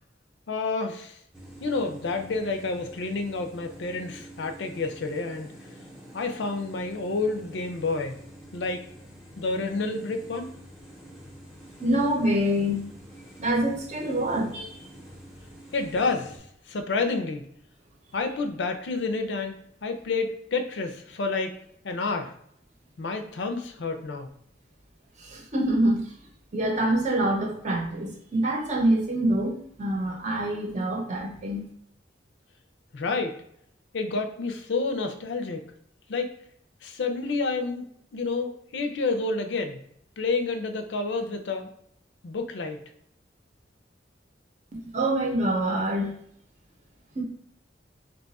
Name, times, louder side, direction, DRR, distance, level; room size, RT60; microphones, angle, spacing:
voice 1, 0.5-1.2 1.6-5.6 6.1-8.2 8.5-8.8 9.4-10.5 15.7-17.5 18.1-21.6 21.8-22.3 23.0-24.3 32.9-33.4 33.9-35.7 36.1-36.4 36.8-37.9 38.1-39.8 40.2-41.7 42.2-42.8, left 3 dB, 70° left, 6 dB, 0.5 m, -29 dB
sound 1, 1.3-16.4, right 1 dB, 5° right, 0.7 m, -47 dB
voice 2, 11.8-12.8 13.4-14.8 25.2-26.1 26.5-31.6 44.7-46.1 47.2-47.3, right 1 dB, 40° right, 1 dB, 0.7 m, -26 dB
2.9 x 2.3 x 4.0 m, 0.70 s
head